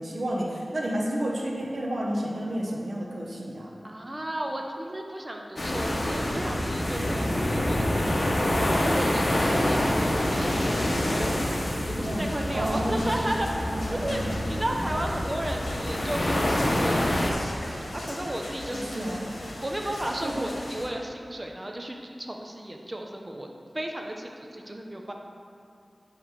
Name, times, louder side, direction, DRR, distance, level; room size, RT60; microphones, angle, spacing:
voice 1, 0.0-3.7 7.2-7.3 12.0-14.3 14.8-15.3 18.7-19.3 20.2-20.5, right 1 dB, 70° right, -2 dB, 0.9 m, -31 dB
voice 2, 3.8-11.3 11.9-13.5 13.9-14.2 14.5-19.2 19.6-23.5 23.7-25.1, right 1 dB, 25° right, 1 dB, 0.7 m, -34 dB
sound 1, 5.6-17.3, left 1 dB, 55° left, 1.0 m, -26 dB
sound 2, 12.0-20.9, left 1 dB, 85° left, 1.1 m, -39 dB
9.1 x 3.3 x 6.6 m, 2.5 s
wide cardioid pair, 70°, 0 cm